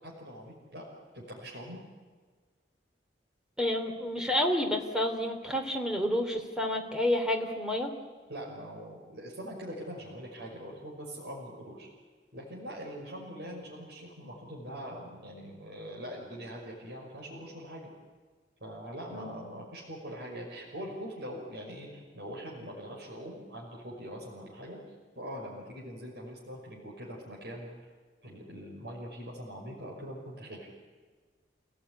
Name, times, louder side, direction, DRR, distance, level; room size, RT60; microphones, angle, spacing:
voice 1, 0.0-0.9 1.1-1.8 8.3-11.9 12.3-17.8 18.6-24.8 25.1-27.7 28.2-30.7, equal, 65° right, -3 dB, 5.9 m, -42 dB
voice 2, 3.6-7.9 19.1-19.3, left 1 dB, 5° right, 3 dB, 3.0 m, -29 dB
29.0 x 17.0 x 9.9 m, 1.5 s
head